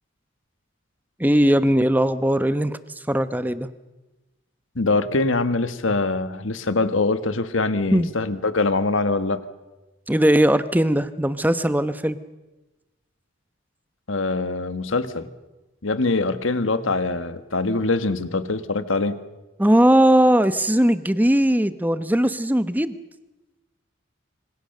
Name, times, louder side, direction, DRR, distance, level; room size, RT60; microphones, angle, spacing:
voice 1, 1.2-2.8 3.1-3.7 7.9-8.1 10.1-12.2 19.6-22.9, right 1 dB, 10° right, 13 dB, 0.9 m, -19 dB
voice 2, 4.7-9.4 14.1-15.3 15.8-19.2, left 3 dB, 80° left, 12 dB, 1.5 m, -23 dB
26.5 x 25.0 x 6.7 m, 1.1 s
head